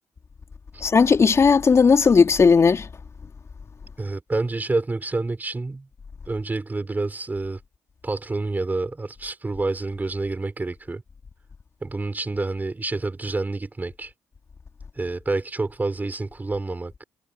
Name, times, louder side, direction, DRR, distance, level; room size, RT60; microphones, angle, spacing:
voice 1, 0.8-2.9, left 5 dB, 40° left, 3.3 m, -16 dB
voice 2, 4.0-5.9 6.3-7.6 8.0-11.0 11.8-14.1 15.0-17.0, right 3 dB, 25° right, 6.5 m, -28 dB
hypercardioid pair, 50°, 7 cm